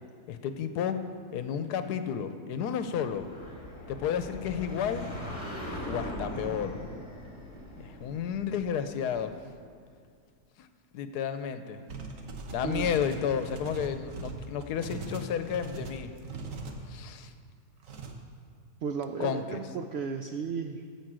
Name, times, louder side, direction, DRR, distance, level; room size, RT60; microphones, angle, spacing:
voice 1, 0.3-1.0 1.3-3.3 3.9-5.1 5.9-6.8 7.8-9.3 10.6-10.7 10.9-11.8 12.5-16.1 16.9-17.3 19.2-19.6, left 8 dB, 85° left, 10 dB, 1.2 m, -32 dB
sound 1, 3.1-9.6, equal, 20° left, 1.6 m, -41 dB
sound 2, 11.9-16.8 17.8-18.1, right 4 dB, 60° right, 1.3 m, -40 dB
voice 2, 12.6-12.9 18.8-21.0, right 6 dB, 75° right, 6 dB, 0.5 m, -34 dB
14.0 x 5.1 x 7.5 m, 2.1 s
omnidirectional pair, 1.7 m